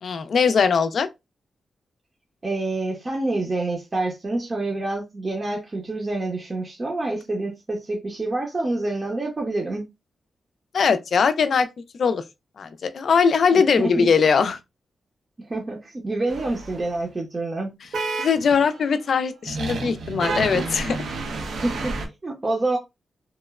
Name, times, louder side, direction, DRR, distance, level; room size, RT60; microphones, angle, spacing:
voice 1, 0.0-1.1 10.7-11.7 11.9-12.2 12.6-14.6 18.2-21.0, left 6 dB, 65° left, 0.3 m, -20 dB
voice 2, 2.4-9.9 13.8-14.1 15.5-17.8 21.3-22.0 22.2-22.8, right 2 dB, 30° right, 0.6 m, -27 dB
sound 1, 16.3-17.0 17.9-18.9 19.5-22.1, right 3 dB, 80° right, 0.6 m, -30 dB
2.9 x 2.0 x 2.3 m
wide cardioid pair, 110°, 0 cm